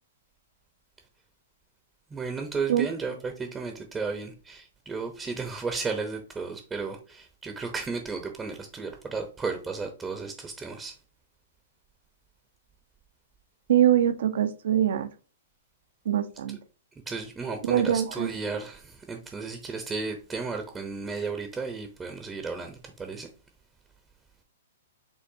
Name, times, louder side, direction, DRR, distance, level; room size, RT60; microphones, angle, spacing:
voice 1, 2.1-10.9 17.1-23.3, right 4 dB, 15° right, 0.8 m, -34 dB
voice 2, 13.7-15.1 16.0-16.6 17.6-18.3, right 10 dB, 65° right, 0.7 m, -23 dB
5.5 x 3.3 x 2.7 m
hypercardioid pair, 120°, 0 cm